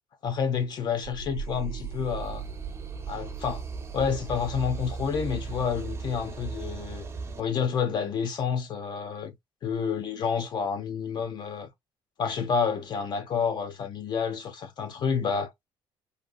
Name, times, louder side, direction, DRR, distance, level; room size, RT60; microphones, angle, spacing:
voice 1, 0.2-2.5 3.1-3.6 3.9-7.1 7.4-9.3 9.6-11.7 12.2-15.5, left 6 dB, 50° left, 1.0 m, -29 dB
sound 1, 1.0-7.4, right 5 dB, 30° right, 0.7 m, -37 dB
3.5 x 2.6 x 2.4 m
cardioid pair, 120°, 10 cm